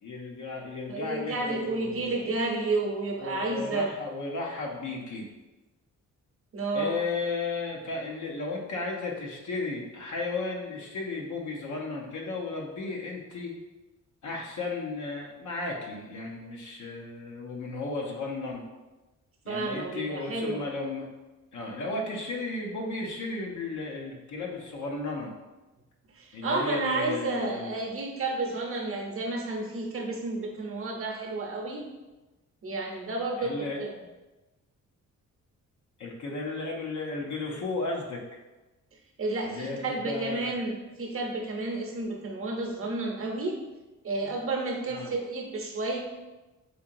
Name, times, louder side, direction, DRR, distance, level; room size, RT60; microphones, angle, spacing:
voice 1, 0.0-2.2 3.2-5.3 6.7-13.5 14.2-18.6 19.4-21.1 21.5-25.3 26.3-27.8 33.4-33.8 36.0-38.2 39.4-40.5 44.9-45.1, left 3 dB, 70° left, -1 dB, 0.8 m, -34 dB
voice 2, 0.9-3.9 6.5-6.9 19.5-20.6 26.1-31.9 32.6-33.9 39.2-43.6 44.0-46.0, right 2 dB, 45° right, 1 dB, 0.7 m, -31 dB
4.4 x 2.8 x 2.6 m, 1.1 s
cardioid pair, 95°, 30 cm